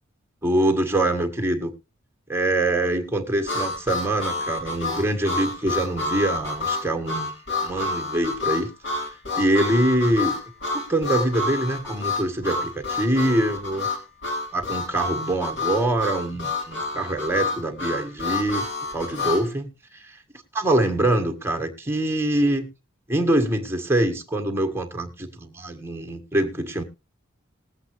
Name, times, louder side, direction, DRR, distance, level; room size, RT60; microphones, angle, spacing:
voice 1, 0.4-1.7 2.3-7.3 7.6-9.0 9.3-10.3 10.7-13.9 14.5-18.7 18.9-20.2 20.5-22.7 23.1-26.8, right 1 dB, 10° right, 1.6 m, -24 dB
Harmonica, 3.5-19.5, left 3 dB, 60° left, 3.9 m, -29 dB
20.0 x 7.9 x 3.1 m
head